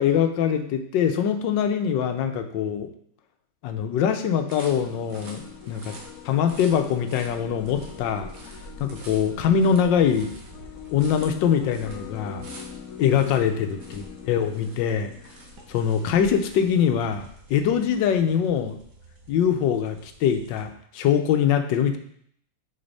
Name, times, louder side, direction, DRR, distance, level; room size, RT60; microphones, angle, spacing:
voice 1, 0.0-2.9 3.6-5.9 6.2-8.3 8.8-10.3 10.9-12.5 13.0-15.1 15.7-17.2 17.5-18.8 19.3-22.0, left 8 dB, 85° left, 7 dB, 1.4 m, -23 dB
sound 1, 4.5-20.6, right 1 dB, 70° right, 1.8 m, -46 dB
sound 2, 4.7-16.7, left 8 dB, 65° left, 0.9 m, -43 dB
6.5 x 4.9 x 4.0 m, 0.66 s
omnidirectional pair, 1.9 m